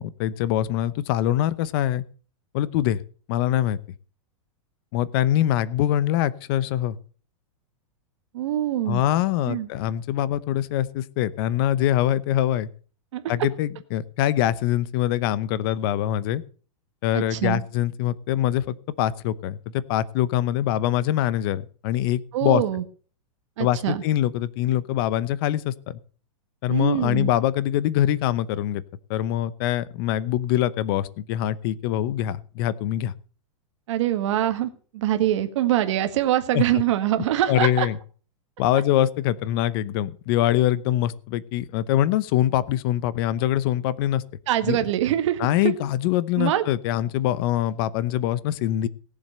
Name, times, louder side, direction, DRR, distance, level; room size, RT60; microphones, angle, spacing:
voice 1, 0.2-2.0 2.5-3.0 3.3-3.8 4.9-7.0 8.9-12.7 13.3-16.4 17.0-19.6 19.9-22.6 23.6-26.0 26.6-28.8 29.1-33.1 36.5-36.6 37.5-38.0 38.6-44.2 44.7-44.8 45.4-48.9, left 12 dB, 45° left, 19 dB, 0.8 m, -24 dB
voice 2, 8.3-9.0 9.5-9.7 13.1-13.2 17.1-17.6 22.3-22.8 23.6-24.0 26.7-27.3 33.9-37.9 44.5-45.5 46.4-46.6, right 12 dB, 60° right, 9 dB, 1.7 m, -24 dB
17.5 x 7.5 x 6.7 m, 0.41 s
supercardioid pair, 155°, 17 cm